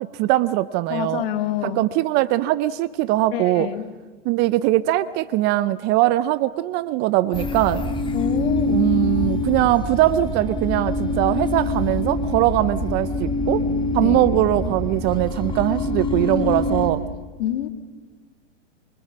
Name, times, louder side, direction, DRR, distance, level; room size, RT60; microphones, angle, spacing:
voice 1, 0.0-1.2 1.6-3.7 4.3-7.8 8.7-13.6 13.9-17.0, right 16 dB, 30° right, 16 dB, 0.6 m, -21 dB
voice 2, 0.9-1.8 3.3-3.9 8.1-9.0 14.0-14.2 17.4-17.7, left 12 dB, 50° left, 8 dB, 2.1 m, -27 dB
sound 1, 7.3-16.9, left 2 dB, 15° left, 2.8 m, -25 dB
24.5 x 23.5 x 6.1 m, 1.4 s
hypercardioid pair, 120°, 37 cm